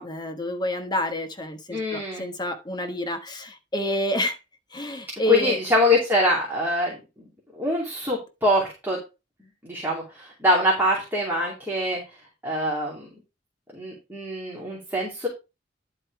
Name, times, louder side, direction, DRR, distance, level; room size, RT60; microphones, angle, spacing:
voice 1, 0.0-4.4 4.7-5.6, equal, 25° left, 1.2 m, -29 dB
voice 2, 1.7-2.3 5.3-7.3 7.5-9.0 9.6-12.0 12.4-13.1 13.7-15.3, left 1 dB, 10° right, 2.7 m, -24 dB
11.0 x 4.6 x 4.7 m
head